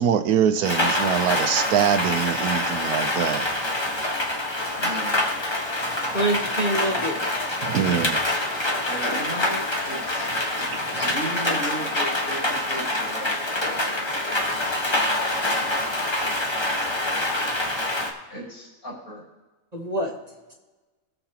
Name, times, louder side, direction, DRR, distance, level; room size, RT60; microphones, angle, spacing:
voice 1, 0.0-3.5 5.8-6.2 6.9-7.0 7.6-8.2 10.6-11.1, right 8 dB, 80° right, 9 dB, 1.2 m, -24 dB
Rain, 0.6-18.1, left 1 dB, 20° left, 1.2 m, -26 dB
voice 2, 4.8-5.2 8.9-10.4 11.0-13.4 18.3-19.2, right 1 dB, 75° left, -5 dB, 4.7 m, -35 dB
voice 3, 6.1-7.3 19.7-20.1, right 1 dB, 30° right, 1 dB, 1.2 m, -25 dB
20.0 x 6.8 x 2.9 m, 1.2 s
omnidirectional pair, 1.6 m